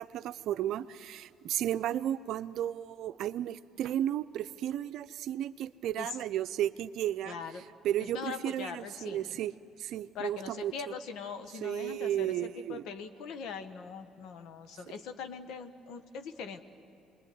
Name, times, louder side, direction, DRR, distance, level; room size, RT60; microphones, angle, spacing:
voice 1, 0.0-9.5 9.8-10.9 11.6-12.9, right 11 dB, 70° right, 13 dB, 0.6 m, -34 dB
voice 2, 7.2-7.6 8.0-9.4 10.1-16.6, left 6 dB, 70° left, 9 dB, 1.4 m, -41 dB
26.0 x 21.5 x 9.5 m, 2.6 s
supercardioid pair, 80°, 0 cm